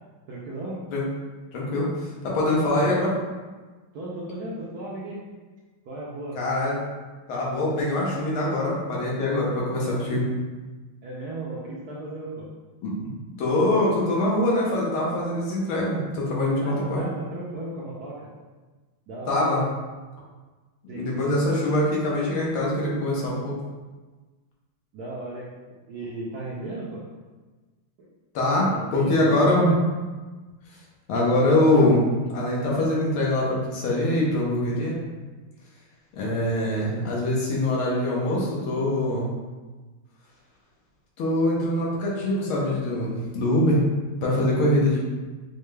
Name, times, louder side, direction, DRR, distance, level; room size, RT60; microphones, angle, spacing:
voice 1, 0.3-0.8 2.7-2.9 3.9-5.2 5.9-6.4 11.0-12.5 16.6-18.3 19.1-19.6 20.9-21.3 24.9-25.5 25.9-27.0 28.0-28.1 28.7-29.8 36.9-37.0, right 2 dB, 70° right, -6 dB, 0.9 m, -36 dB
voice 2, 1.5-3.2 6.4-6.8 7.3-10.3 12.8-13.0 13.4-17.0 19.3-19.6 20.8-23.6 28.3-29.7 31.1-32.1 32.3-35.0 36.1-39.3 41.2-43.8 44.2-45.0, left 1 dB, 85° left, -4 dB, 1.8 m, -23 dB
5.4 x 2.1 x 3.2 m, 1.3 s
omnidirectional pair, 2.2 m